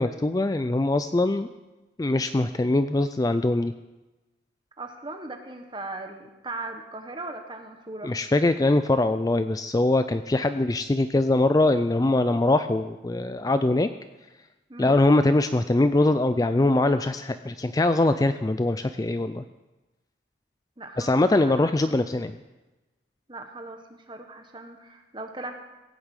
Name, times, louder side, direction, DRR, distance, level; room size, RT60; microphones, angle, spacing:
voice 1, 0.0-1.5 2.0-3.7 8.0-13.9 14.8-19.4 21.0-22.4, left 2 dB, 20° left, 10 dB, 0.4 m, -22 dB
voice 2, 4.8-8.1 14.7-15.0 20.8-21.9 23.3-25.6, right 2 dB, 25° right, 5 dB, 1.4 m, -39 dB
17.0 x 7.0 x 8.2 m, 1.1 s
head